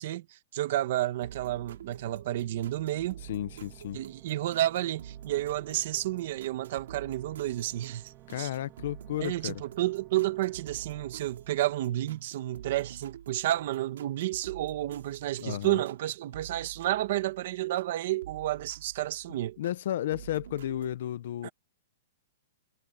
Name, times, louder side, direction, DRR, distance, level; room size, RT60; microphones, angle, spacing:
voice 1, 0.0-3.2 3.9-8.5 9.2-19.6 21.4-21.5, right 14 dB, 40° right, 1.4 m, -31 dB
sound 1, 1.2-17.9 18.2-19.8 20.1-21.0, right 10 dB, 60° right, 2.8 m, -49 dB
sound 2, 1.6-13.0, right 16 dB, 20° right, 2.6 m, -55 dB
voice 2, 3.2-4.0 8.3-9.6 15.4-15.8 19.6-21.5, left 12 dB, 45° left, 0.8 m, -33 dB
hypercardioid pair, 180°, 0 cm